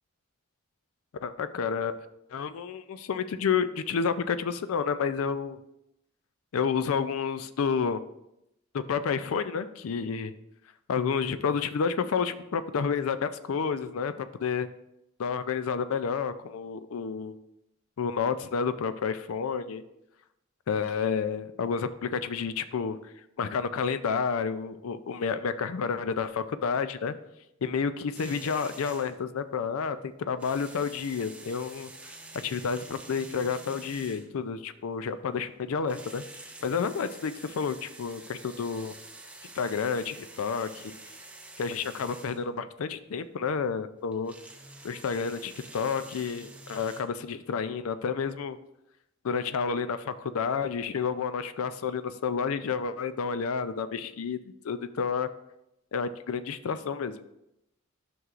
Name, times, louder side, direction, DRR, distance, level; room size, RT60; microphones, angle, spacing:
voice 1, 1.2-1.9 2.3-5.6 6.5-8.0 8.7-10.3 10.9-14.7 15.2-17.4 18.0-19.8 20.7-27.1 27.6-31.9 32.4-36.2 36.6-38.9 39.4-40.9 41.6-44.3 44.8-48.6 49.2-54.4 54.6-55.3 55.9-57.2, left 6 dB, 75° left, 12 dB, 0.4 m, -30 dB
sound 1, 28.1-29.2 30.3-34.5 35.8-42.4 44.1-47.0, right 2 dB, 5° right, 0.5 m, -48 dB
11.0 x 6.2 x 2.5 m, 0.85 s
head